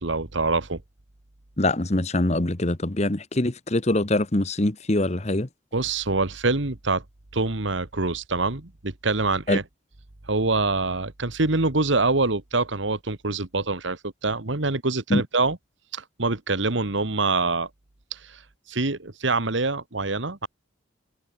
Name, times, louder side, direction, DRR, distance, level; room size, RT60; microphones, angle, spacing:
voice 1, 0.0-0.8 5.7-7.0 7.3-9.6 10.3-15.6 15.9-17.7 18.1-18.4 18.7-20.5, right 3 dB, 70° right, 1.7 m, -25 dB
voice 2, 1.6-5.5 9.5-9.6 15.1-15.2, left 1 dB, 35° left, 1.3 m, -23 dB
head